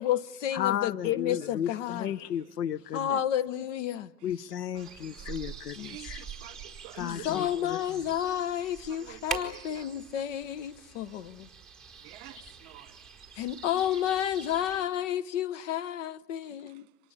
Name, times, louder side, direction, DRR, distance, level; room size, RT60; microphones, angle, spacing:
voice 1, 0.0-2.1 2.9-4.1 7.0-11.5 13.3-16.9, left 11 dB, 45° left, 1.0 m, -31 dB
voice 2, 0.5-3.2 4.2-6.2 7.0-7.8, left 10 dB, 70° left, 0.9 m, -34 dB
voice 3, 2.0-2.5 4.7-5.4 5.8-7.8 8.9-9.9 12.0-13.0 16.7-16.8, right 15 dB, 45° right, 1.9 m, -50 dB
sound 1, 4.8-14.8, right 6 dB, ahead, 4.5 m, -44 dB
29.5 x 27.0 x 7.1 m
hypercardioid pair, 120°, 50 cm